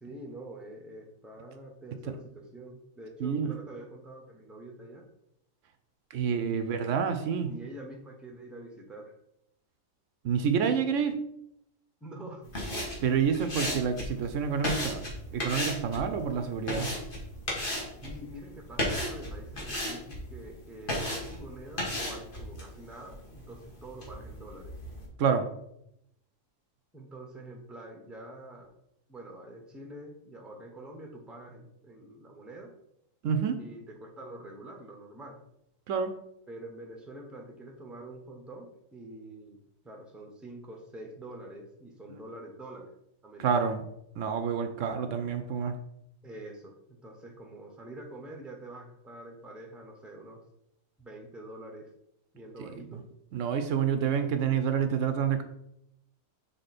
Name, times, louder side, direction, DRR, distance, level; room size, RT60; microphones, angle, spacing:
voice 1, 0.0-5.0 6.3-7.1 7.4-9.1 12.0-12.4 18.0-24.7 26.9-28.7 29.1-32.7 33.6-35.4 36.5-39.6 39.8-42.9 43.2-43.7 46.2-50.4 51.0-51.9 52.3-53.0 54.1-54.4, right 1 dB, ahead, 1 dB, 0.8 m, -46 dB
voice 2, 3.2-3.5 6.1-7.5 10.2-11.2 13.0-15.0 15.3-16.9 25.2-25.5 33.2-33.6 35.9-36.1 43.4-43.8 44.2-45.7 52.6-53.0 53.3-55.4, right 7 dB, 75° right, 8 dB, 0.9 m, -28 dB
sound 1, 12.4-25.1, left 1 dB, 40° left, 1.9 m, -36 dB
6.6 x 3.7 x 4.2 m, 0.78 s
omnidirectional pair, 1.4 m